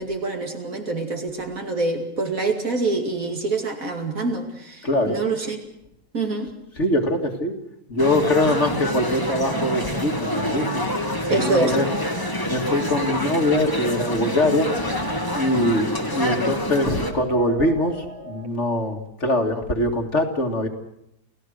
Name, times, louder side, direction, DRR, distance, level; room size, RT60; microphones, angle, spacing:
voice 1, 0.0-5.6 6.1-6.5 11.3-11.8, right 3 dB, 55° right, 3 dB, 2.9 m, -25 dB
voice 2, 4.8-5.2 6.8-7.5 7.9-10.9 11.4-11.9 12.5-14.7 15.3-20.7, left 1 dB, 45° left, 3 dB, 2.5 m, -23 dB
sound 1, 8.0-17.1, left 1 dB, 15° left, 1.9 m, -27 dB
sound 2, 9.2-18.5, right 3 dB, 35° right, 2.8 m, -39 dB
29.0 x 15.5 x 6.5 m, 0.78 s
omnidirectional pair, 1.7 m